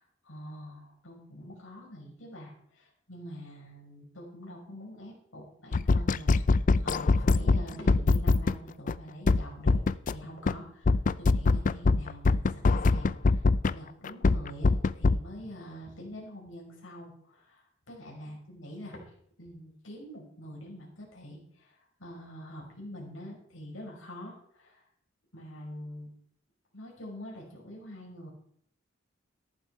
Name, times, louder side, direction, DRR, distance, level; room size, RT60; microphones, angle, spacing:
voice 1, 0.0-9.8 10.1-19.1 19.4-24.8 25.3-26.1 26.7-28.3, equal, 85° left, -2 dB, 5.6 m, -45 dB
sound 1, 5.7-8.5 8.9-9.0 9.3-10.1 10.5-10.6 10.8-13.7 14.0-15.2, left 3 dB, 40° left, 0.4 m, -22 dB
14.0 x 11.5 x 4.6 m, 0.65 s
head